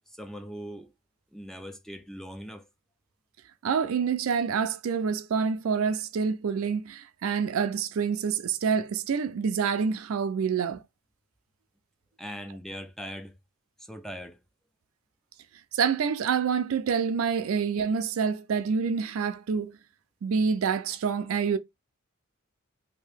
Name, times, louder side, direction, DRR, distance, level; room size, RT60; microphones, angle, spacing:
voice 1, 0.1-0.9 1.3-2.7 12.2-13.4 13.8-14.4, equal, ahead, 0.3 m, -40 dB
voice 2, 3.6-10.8 15.7-19.8 20.2-21.6, right 6 dB, 65° right, 0.4 m, -27 dB
2.8 x 2.7 x 3.3 m
head